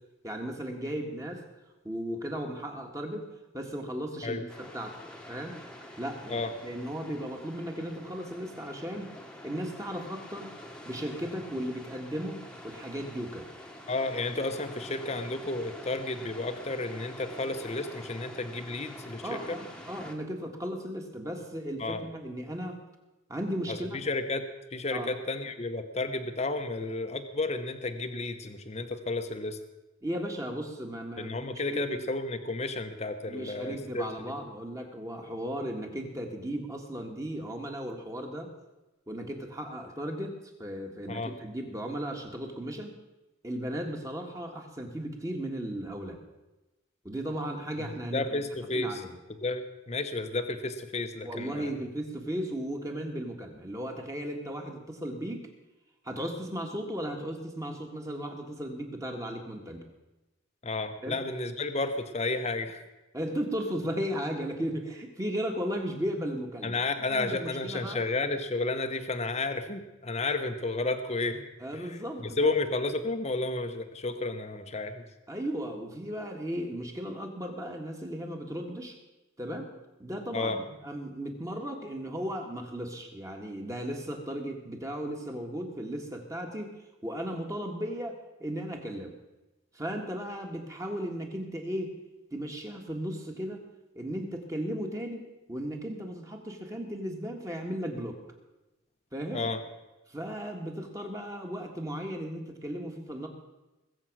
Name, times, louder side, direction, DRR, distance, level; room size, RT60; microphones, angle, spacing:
voice 1, 0.2-1.4 1.8-3.3 3.5-5.0 5.3-5.6 6.0-9.1 9.4-10.5 10.8-13.5 19.2-22.8 23.3-24.0 24.9-25.1 30.0-32.0 33.2-38.5 39.1-43.0 43.4-46.2 47.0-48.4 48.7-49.2 51.2-55.4 56.0-59.8 61.0-61.2 63.1-66.8 67.1-68.0 71.6-72.5 75.3-79.0 79.4-79.7 80.0-80.5 80.8-86.7 87.0-89.1 89.7-91.9 92.3-93.6 93.9-98.2 99.1-99.5 100.1-103.3, equal, 15° right, 3 dB, 1.8 m, -36 dB
sound 1, 4.5-20.1, left 1 dB, 5° left, 1.4 m, -46 dB
voice 2, 13.9-19.6 21.8-22.0 23.7-24.4 24.7-29.6 31.2-34.3 41.1-41.3 48.1-49.0 49.4-51.7 60.6-62.8 66.6-75.0 80.3-80.6 99.3-99.6, left 2 dB, 35° left, 8 dB, 0.9 m, -32 dB
20.5 x 7.8 x 6.2 m, 1.1 s
head